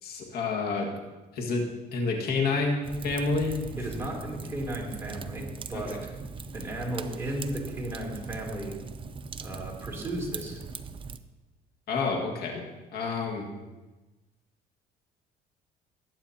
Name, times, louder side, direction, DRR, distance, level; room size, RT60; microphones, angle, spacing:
voice 1, 0.0-0.9 1.3-3.6 5.7-5.8 11.9-12.7 12.9-13.5, left 3 dB, 65° left, 0 dB, 1.9 m, -29 dB
Fire, 2.8-11.2, right 5 dB, 30° right, 0.6 m, -40 dB
voice 2, 3.8-6.1 6.5-8.8 9.4-10.6, right 1 dB, 15° right, -3 dB, 3.1 m, -35 dB
19.0 x 8.7 x 2.9 m, 1.2 s
cardioid pair, 110°, 17 cm